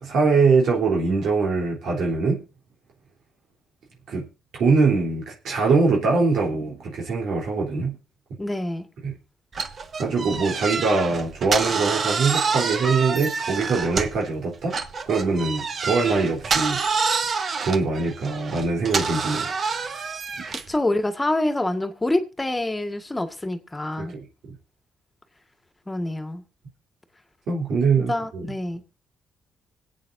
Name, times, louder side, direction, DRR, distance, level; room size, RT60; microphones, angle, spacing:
voice 1, 0.0-2.4 4.1-4.3 4.6-8.0 9.0-9.1 10.0-14.7 15.1-16.8 17.6-19.6 24.0-24.3 27.5-28.5, right 4 dB, 70° right, 3.6 m, -22 dB
voice 2, 8.4-8.9 20.5-24.1 25.9-26.4 28.1-28.8, left 1 dB, 15° left, 1.8 m, -26 dB
sound 1, 9.5-14.3 14.7-20.8, right 5 dB, 45° right, 1.3 m, -27 dB
25.0 x 8.6 x 2.7 m
cardioid pair, 90°, 0 cm